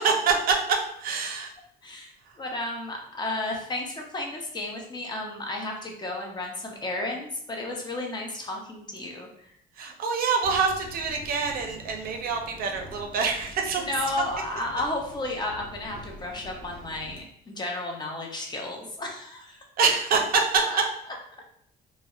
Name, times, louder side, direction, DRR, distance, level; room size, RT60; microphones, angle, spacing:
voice 1, 0.0-1.5 9.8-13.8 19.8-20.6, right 5 dB, 60° right, 3 dB, 0.5 m, -25 dB
voice 2, 2.4-9.3 13.8-17.2 17.5-19.6 20.7-20.8, left 2 dB, 25° left, 1 dB, 0.5 m, -33 dB
sound 1, 10.4-17.2, left 1 dB, 50° left, 0.9 m, -46 dB
2.6 x 2.0 x 2.3 m, 0.69 s
cardioid pair, 110°, 17 cm